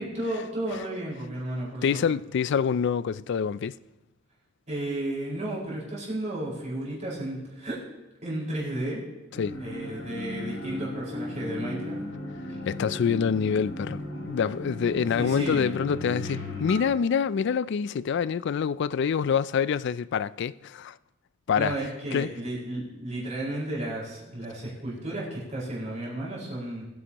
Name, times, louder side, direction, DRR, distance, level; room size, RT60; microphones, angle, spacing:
voice 1, 0.0-2.0 4.7-7.8 8.2-9.0 9.6-12.0 12.5-12.6 15.2-15.6 21.6-26.8, right 1 dB, 35° right, 5.0 m, -33 dB
voice 2, 1.8-3.8 9.4-9.6 12.7-14.0 14.3-20.9 21.5-21.8 22.1-22.3, left 6 dB, 60° left, 0.3 m, -26 dB
sound 1, 9.3-16.9, left 2 dB, 85° left, 4.2 m, -36 dB
21.5 x 9.6 x 3.0 m
head